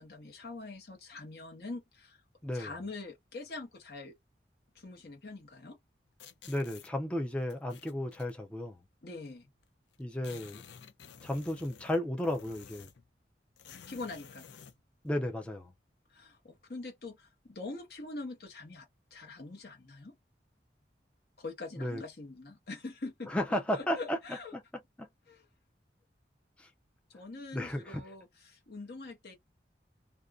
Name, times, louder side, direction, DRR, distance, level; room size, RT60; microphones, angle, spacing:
voice 1, 0.0-2.2 2.5-4.1 4.7-5.8 9.0-9.5 13.9-14.5 16.1-20.1 21.4-23.3 23.7-24.5 25.3-25.5 27.1-29.3, left 3 dB, 60° left, 0.9 m, -44 dB
sound 1, 6.2-6.9 7.5-8.3 9.3-9.4 9.6-9.7 9.9-13.1 13.6-14.8, left 7 dB, 85° left, 0.4 m, -52 dB
voice 2, 6.5-8.8 10.0-10.6 11.2-12.9 15.0-15.7 21.8-22.0 23.3-24.2 24.5-24.6 25.0-25.1 26.6-26.7 27.5-28.0, left 1 dB, 5° left, 0.3 m, -34 dB
2.5 x 2.2 x 2.3 m
head